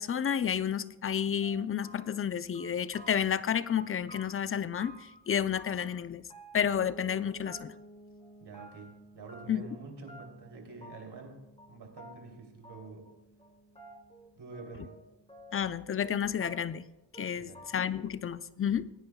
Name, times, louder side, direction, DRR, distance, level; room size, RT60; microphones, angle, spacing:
voice 1, 0.0-6.3 6.5-7.7 9.5-9.6 15.5-16.8 17.2-18.9, left 8 dB, 30° left, 15 dB, 0.5 m, -31 dB
sound 1, 0.7-0.8 1.0-2.3 2.5-3.4 3.7-5.2 5.5-6.0 6.3-7.2 7.5-7.9 8.2-8.9 9.3-9.8 10.1-10.5 10.8-11.3 11.6-11.7 12.0-12.2 12.6-13.1 13.4-15.0 15.3-16.1 16.4-16.9 17.1-17.3 17.5-18.0, right 1 dB, 10° left, 2.2 m, -52 dB
sound 2, 6.6-16.3, equal, 50° left, 2.5 m, -55 dB
voice 2, 8.4-13.1 14.4-14.9 17.3-17.6, right 4 dB, 55° right, 2 dB, 3.1 m, -47 dB
20.0 x 9.6 x 2.3 m, 0.99 s
cardioid pair, 70°, 47 cm